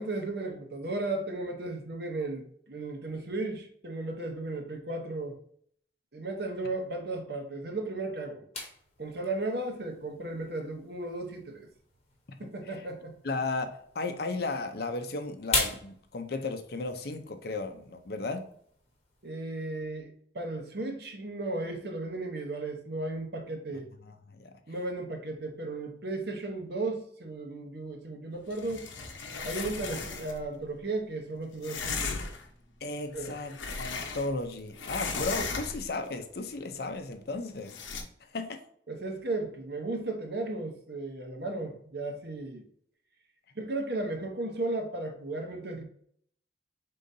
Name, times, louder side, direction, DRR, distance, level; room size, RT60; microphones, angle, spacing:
voice 1, 0.0-5.4 6.1-8.4 9.0-11.7 12.4-13.1 19.2-23.9 24.7-28.9 29.4-32.2 33.1-33.3 38.9-42.6 43.5-45.8, right 2 dB, 55° right, 0.9 m, -35 dB
sound 1, 8.5-19.3, left 3 dB, 35° left, 1.0 m, -40 dB
voice 2, 13.2-18.4 24.0-24.5 32.8-37.8 38.2-38.6, left 3 dB, 55° left, 0.6 m, -35 dB
sound 2, 28.5-30.4 31.6-32.5 33.1-34.5 34.7-36.0 37.7-38.0, left 4 dB, 85° left, 0.8 m, -36 dB
5.3 x 3.8 x 2.7 m
head